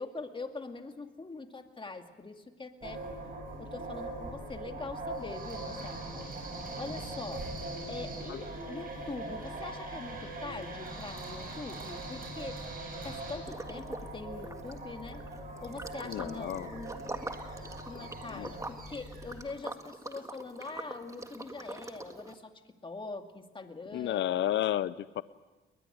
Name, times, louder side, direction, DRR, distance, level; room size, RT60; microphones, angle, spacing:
voice 1, 0.0-3.0 3.6-6.0 6.7-7.4 7.9-12.6 13.0-15.3 15.6-16.9 17.9-24.2, left 3 dB, 25° left, 6 dB, 2.2 m, -43 dB
sound 1, 2.8-19.4, right 2 dB, 45° right, 7.3 m, -41 dB
Liquid, 13.4-14.1 14.4-22.3, right 2 dB, 15° right, 1.7 m, -44 dB
voice 2, 16.0-16.7 18.3-18.5 23.9-25.2, left 12 dB, 70° left, 17 dB, 0.6 m, -32 dB
21.0 x 20.5 x 8.0 m, 1.2 s
cardioid pair, 90°, 20 cm